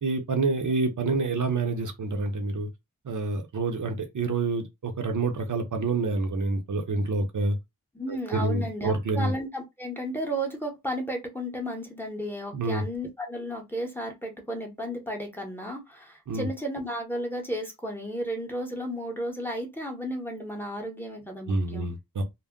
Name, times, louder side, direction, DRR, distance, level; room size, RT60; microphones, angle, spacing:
voice 1, 0.0-2.7 3.0-7.6 8.1-9.3 12.5-12.8 16.3-16.5 21.5-22.2, right 3 dB, 55° right, 0.6 m, -27 dB
voice 2, 7.9-21.9, equal, 5° left, 0.8 m, -33 dB
2.2 x 2.1 x 3.5 m
wide cardioid pair, 80°, 36 cm